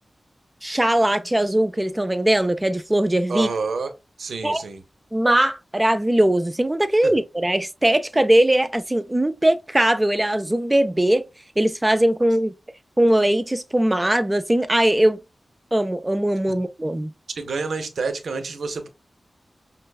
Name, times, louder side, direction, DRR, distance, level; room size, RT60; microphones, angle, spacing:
voice 1, 0.6-3.5 4.4-4.6 5.1-11.3 11.6-12.5 13.0-15.2 15.7-17.1, right 1 dB, 15° right, 0.4 m, -20 dB
voice 2, 3.3-3.9 4.2-4.8 7.0-7.1 16.5-16.6 17.4-18.9, right 4 dB, 90° right, 0.6 m, -28 dB
5.4 x 2.2 x 2.3 m
wide cardioid pair, 80°, 0 cm